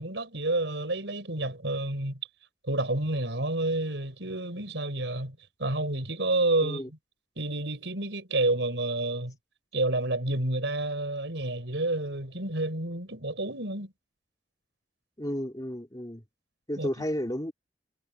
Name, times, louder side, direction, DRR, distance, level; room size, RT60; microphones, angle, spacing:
voice 1, 0.0-2.2 2.6-6.8 7.4-9.3 9.7-13.9 16.8-16.9, right 2 dB, 85° right, 4.7 m, -29 dB
voice 2, 6.6-6.9 15.2-16.2 16.7-17.5, equal, 20° left, 2.7 m, -32 dB
head